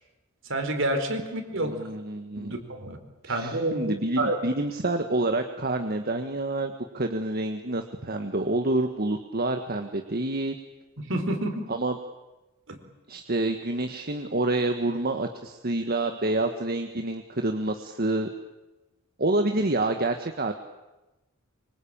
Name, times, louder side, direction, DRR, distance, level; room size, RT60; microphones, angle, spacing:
voice 1, 0.5-1.7 2.4-3.0 3.3-3.9 4.2-4.4 11.0-11.7 12.7-12.8, right 1 dB, 65° right, 6 dB, 4.4 m, -28 dB
voice 2, 1.5-2.6 3.2-10.6 11.7-12.0 13.1-18.3 19.2-20.5, right 2 dB, 45° right, 6 dB, 1.5 m, -28 dB
25.0 x 24.5 x 8.8 m, 1.1 s
head